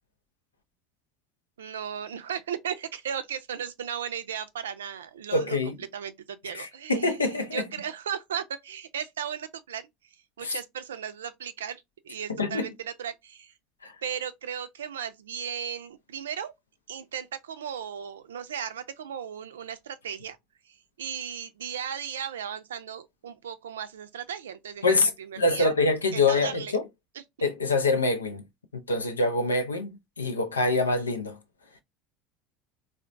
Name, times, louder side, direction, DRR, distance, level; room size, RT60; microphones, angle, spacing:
voice 1, 1.6-7.2 7.5-9.9 10.4-13.5 14.0-16.5 16.9-20.4 20.7-25.7 26.1-26.8, right 8 dB, 75° right, 0.4 m, -36 dB
voice 2, 5.3-5.8 6.5-7.7 10.4-10.6 12.4-12.7 13.8-13.9 24.8-25.1 25.4-26.8 27.4-28.4 28.7-31.4, left 3 dB, 80° left, 0.5 m, -25 dB
3.9 x 2.0 x 2.4 m
figure-of-eight pair, 70°, 0 cm